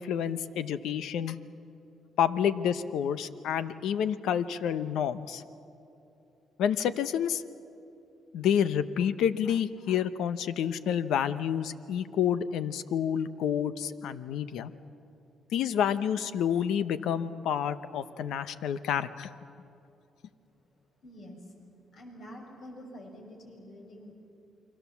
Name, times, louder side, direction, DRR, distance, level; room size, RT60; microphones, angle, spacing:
voice 1, 0.0-1.4 2.2-5.4 6.6-7.4 8.3-14.7 15.5-19.3, left 8 dB, 80° left, 13 dB, 0.9 m, -29 dB
voice 2, 21.0-21.5 21.9-24.1, equal, 65° left, 1 dB, 6.1 m, -47 dB
28.5 x 23.5 x 7.2 m, 2.8 s
cardioid pair, 90°, 0 cm